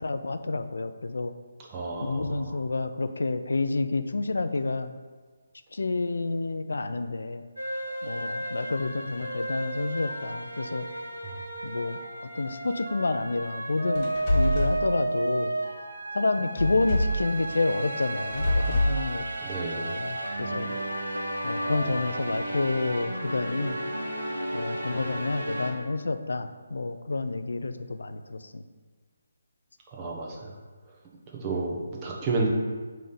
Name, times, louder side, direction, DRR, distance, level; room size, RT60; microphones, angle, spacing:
voice 1, 0.0-1.3 2.0-4.9 5.8-7.4 8.0-10.8 11.6-12.0 12.4-15.5 16.1-19.2 19.9-20.7 21.4-23.8 24.5-28.4, left 3 dB, 60° left, 9 dB, 0.4 m, -29 dB
voice 2, 1.7-2.5 19.4-19.9 29.9-30.5 31.4-32.5, right 3 dB, 20° right, -2 dB, 1.0 m, -31 dB
sound 1, 7.6-25.7, right 1 dB, 80° right, 1.2 m, -33 dB
sound 2, 13.9-14.8 16.6-17.2 18.2-19.0, left 1 dB, 30° left, 1.4 m, -25 dB
5.3 x 3.3 x 5.4 m, 1.4 s
figure-of-eight pair, 145°, 0 cm